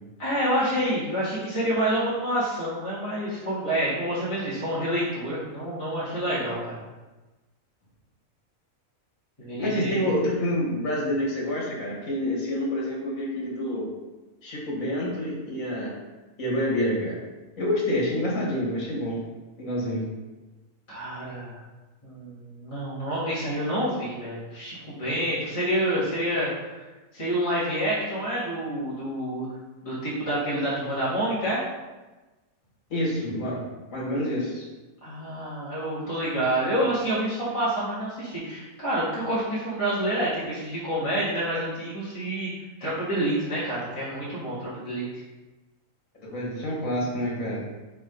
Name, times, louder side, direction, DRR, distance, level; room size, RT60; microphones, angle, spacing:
voice 1, 0.2-6.8 9.4-10.1 20.9-21.6 22.0-26.8 27.1-29.5 29.8-31.6 35.0-42.5 42.8-45.1, right 1 dB, 25° left, -11 dB, 1.8 m, -28 dB
voice 2, 9.6-13.9 14.4-15.9 16.4-17.2 17.6-19.2 19.6-20.0 32.9-34.7 46.2-47.6, left 1 dB, 75° left, -4 dB, 2.2 m, -27 dB
4.5 x 4.3 x 5.3 m, 1.2 s
omnidirectional pair, 1.4 m